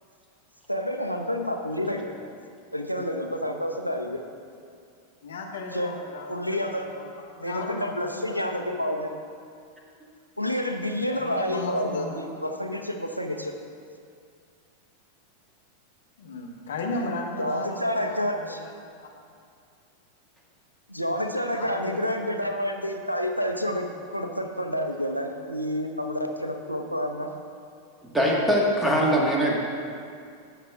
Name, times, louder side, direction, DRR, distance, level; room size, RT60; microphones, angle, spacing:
voice 1, 0.7-2.1 2.7-4.2 5.7-5.9 6.3-6.9 7.4-9.1 10.4-13.5 17.4-18.6 20.9-23.9 24.1-27.3, equal, 90° right, 5 dB, 0.7 m, -29 dB
voice 2, 5.2-7.1 7.4-8.4 11.1-12.2 16.2-18.7 21.5-22.0, left 3 dB, 65° left, 0 dB, 1.2 m, -35 dB
voice 3, 28.1-29.6, equal, 5° right, -2 dB, 1.5 m, -22 dB
18.0 x 6.6 x 2.4 m, 2.3 s
figure-of-eight pair, 90°, 0 cm